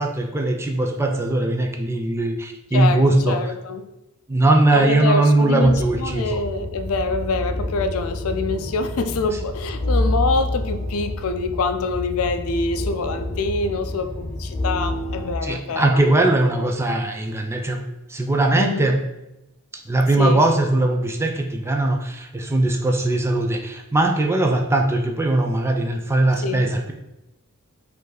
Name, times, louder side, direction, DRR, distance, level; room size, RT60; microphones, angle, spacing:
voice 1, 0.0-3.5 4.3-6.4 15.4-17.8 18.1-19.0 19.7-26.9, right 2 dB, 10° right, 3 dB, 0.4 m, -20 dB
voice 2, 2.7-3.9 4.7-16.0 18.5-18.9 20.2-20.5 26.4-26.7, left 3 dB, 65° left, 8 dB, 0.4 m, -25 dB
sound 1, 5.6-15.3, left 1 dB, 20° left, 0.8 m, -28 dB
5.1 x 2.6 x 3.9 m, 0.92 s
head